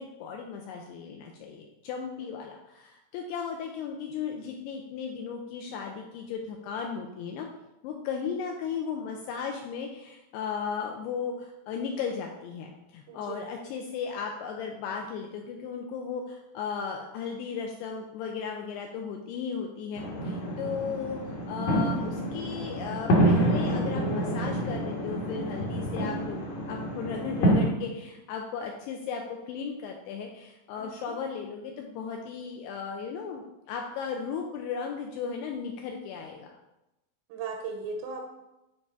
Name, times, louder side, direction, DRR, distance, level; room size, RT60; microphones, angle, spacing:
voice 1, 0.0-7.5 7.8-21.2 21.5-26.4 26.7-36.5, left 6 dB, 85° left, 2 dB, 2.4 m, -36 dB
voice 2, 13.1-13.5 30.8-31.1 37.3-38.3, right 4 dB, 80° right, 2 dB, 2.8 m, -37 dB
sound 1, 20.0-27.7, right 1 dB, 65° left, 2.0 m, -27 dB
9.5 x 3.4 x 4.6 m, 0.93 s
omnidirectional pair, 5.3 m